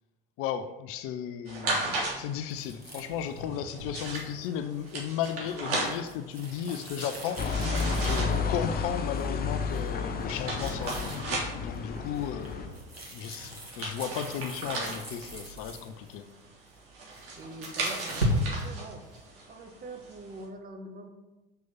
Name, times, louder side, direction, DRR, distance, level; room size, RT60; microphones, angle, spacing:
voice 1, 0.4-7.7 8.0-12.8 13.1-16.2, left 9 dB, 50° left, 9 dB, 0.8 m, -35 dB
sound 1, 1.5-20.4, right 2 dB, 50° right, 3.2 m, -37 dB
sound 2, 2.5-8.6 9.1-9.4 9.7-9.9 10.2-11.3 11.7-16.2 17.0-18.7, equal, 90° right, 1.9 m, -37 dB
sound 3, 7.4-12.7, left 4 dB, 30° left, 1.2 m, -31 dB
voice 2, 17.4-19.1 19.5-21.1, right 2 dB, 30° right, 4 dB, 2.0 m, -44 dB
7.0 x 6.3 x 7.2 m, 1.1 s
figure-of-eight pair, 70°, 29 cm